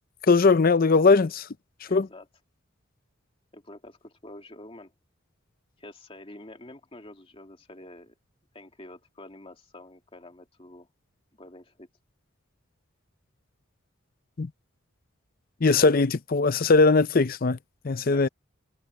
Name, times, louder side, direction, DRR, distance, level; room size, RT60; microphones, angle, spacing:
voice 1, 0.3-1.5 1.9-2.1 14.4-14.5 15.6-17.6 17.8-18.3, left 4 dB, 45° left, 0.6 m, -20 dB
voice 2, 1.9-2.3 3.5-4.9 5.8-8.1 8.5-10.9 11.3-11.9 18.1-18.3, left 1 dB, 25° left, 2.5 m, -47 dB
head